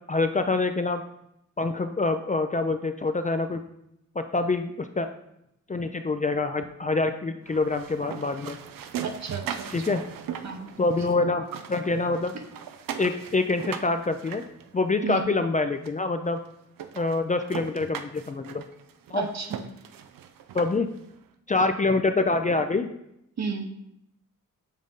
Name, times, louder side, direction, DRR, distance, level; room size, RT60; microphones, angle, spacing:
voice 1, 0.1-1.0 1.6-3.6 4.2-5.1 5.7-8.6 9.7-10.0 10.8-12.3 13.0-14.4 14.7-16.4 16.9-18.6 19.1-19.2 20.5-20.9 21.5-22.9, left 3 dB, 25° left, 7 dB, 0.4 m, -26 dB
sound 1, 7.4-11.2 11.4-15.2 15.9-16.0 16.4-16.5 16.8-21.0, right 8 dB, 85° right, 0.5 m, -39 dB
voice 2, 9.0-9.9 10.4-10.7 12.3-12.4 15.0-15.3 19.1-19.6 23.4-23.7, right 5 dB, 55° right, 5 dB, 0.9 m, -32 dB
7.4 x 3.8 x 3.6 m, 0.80 s
cardioid pair, 65°, 33 cm